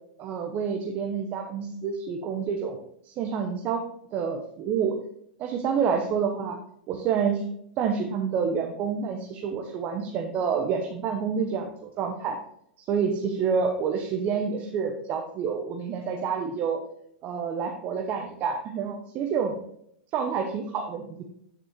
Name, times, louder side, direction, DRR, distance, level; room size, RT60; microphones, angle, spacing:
voice 1, 0.2-3.8 4.1-5.0 5.4-6.6 6.9-7.4 7.8-12.4 12.9-16.8 17.2-19.5 20.1-21.2, right 6 dB, 40° right, 3 dB, 1.0 m, -28 dB
9.3 x 4.3 x 4.5 m, 0.70 s
hypercardioid pair, 115°, 5 cm